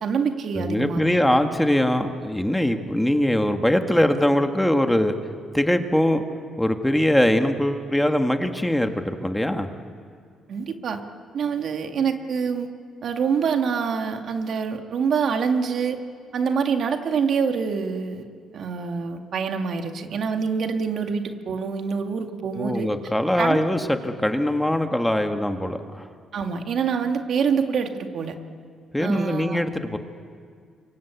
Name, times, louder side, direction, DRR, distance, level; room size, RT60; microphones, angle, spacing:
voice 1, 0.0-1.2 10.5-11.0 11.3-12.7 13.0-16.0 16.3-18.2 18.5-22.9 23.4-23.6 26.3-28.4 29.0-29.6, right 6 dB, 60° right, 5 dB, 2.1 m, -25 dB
voice 2, 0.6-5.2 5.5-6.2 6.6-9.7 22.6-26.0 28.9-30.0, left 1 dB, 5° left, 6 dB, 1.8 m, -22 dB
27.5 x 24.0 x 8.5 m, 2.1 s
cardioid pair, 90°, 0 cm